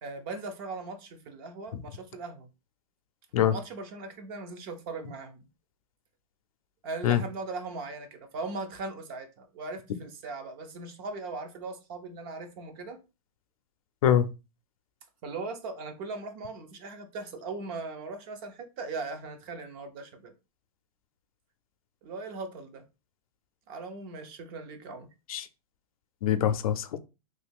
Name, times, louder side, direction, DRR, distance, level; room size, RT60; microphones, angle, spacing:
voice 1, 0.0-2.5 3.4-5.4 6.8-13.0 15.2-20.3 22.0-22.8 23.7-25.1, right 3 dB, 40° right, 0.6 m, -39 dB
voice 2, 26.2-27.0, left 10 dB, 80° left, 0.5 m, -24 dB
3.2 x 2.3 x 3.5 m
supercardioid pair, 155°, 18 cm